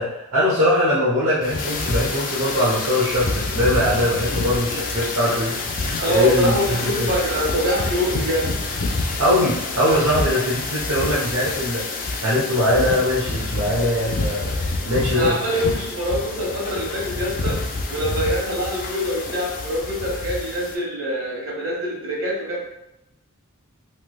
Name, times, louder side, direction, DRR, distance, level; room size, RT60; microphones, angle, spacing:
voice 1, 0.0-5.6 6.1-7.1 9.2-11.8 12.2-15.6, left 1 dB, 85° right, -8 dB, 0.9 m, -21 dB
sound 1, 1.4-20.7, left 3 dB, 40° left, 0.4 m, -27 dB
voice 2, 6.0-8.6 10.0-10.2 15.1-17.6 17.9-22.6, equal, 70° right, -5 dB, 1.3 m, -24 dB
3.2 x 3.0 x 2.3 m, 0.89 s
head